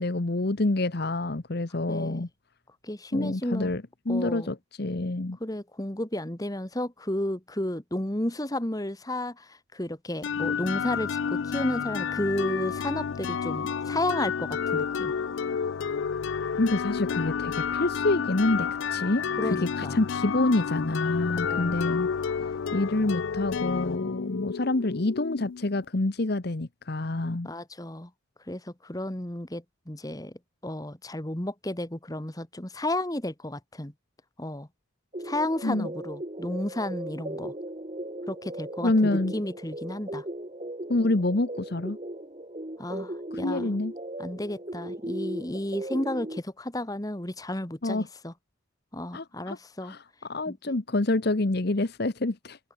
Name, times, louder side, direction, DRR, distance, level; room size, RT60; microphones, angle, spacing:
voice 1, 0.0-2.3 3.1-5.4 16.6-22.1 22.7-27.5 35.6-35.9 38.8-39.3 40.9-42.0 43.4-43.9 47.8-48.1 49.1-52.6, left 2 dB, 50° left, 1.0 m, -27 dB
voice 2, 1.9-2.2 2.8-3.7 4.1-4.5 5.4-15.1 19.4-20.0 21.4-21.8 27.4-28.1 28.5-30.3 30.6-33.9 34.4-34.7 35.2-37.5 38.3-40.2 42.8-43.8 44.2-48.3 48.9-49.9 50.5-50.7, left 1 dB, 15° left, 1.5 m, -32 dB
sound 1, 10.2-25.8, left 6 dB, 65° left, 0.4 m, -30 dB
sound 2, 35.1-46.4, right 1 dB, 30° right, 1.7 m, -37 dB
head